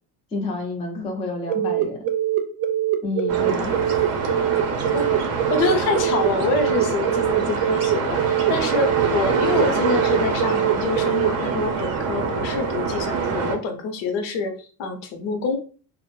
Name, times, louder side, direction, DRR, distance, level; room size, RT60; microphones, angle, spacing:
voice 1, 0.3-2.0 3.0-3.8, left 3 dB, 15° left, 0 dB, 0.3 m, -29 dB
sound 1, 1.5-11.3, right 11 dB, 80° right, 0.6 m, -23 dB
sound 2, 3.3-13.6, right 5 dB, 40° right, 0.5 m, -25 dB
voice 2, 5.5-15.6, left 4 dB, 85° left, 5 dB, 0.7 m, -26 dB
2.4 x 2.0 x 3.0 m, 0.40 s
cardioid pair, 160°, 42 cm